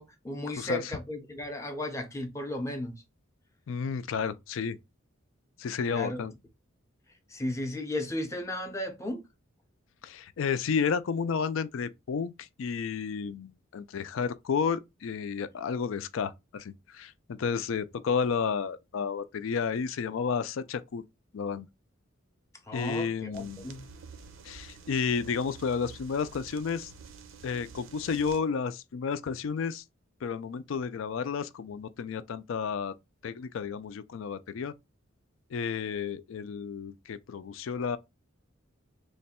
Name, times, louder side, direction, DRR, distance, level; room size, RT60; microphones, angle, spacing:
voice 1, 0.0-3.0 5.9-6.2 7.3-9.2 22.7-23.9, left 1 dB, 15° left, 0.5 m, -35 dB
voice 2, 3.7-4.8 5.6-6.3 10.0-21.0 21.3-21.7 22.7-23.6 24.4-26.9 27.4-29.8 30.2-32.9 33.2-34.7 35.5-38.0, left 6 dB, 70° left, 0.4 m, -31 dB
sound 1, 23.3-28.4, right 5 dB, 70° right, 0.6 m, -49 dB
3.1 x 2.2 x 4.1 m
head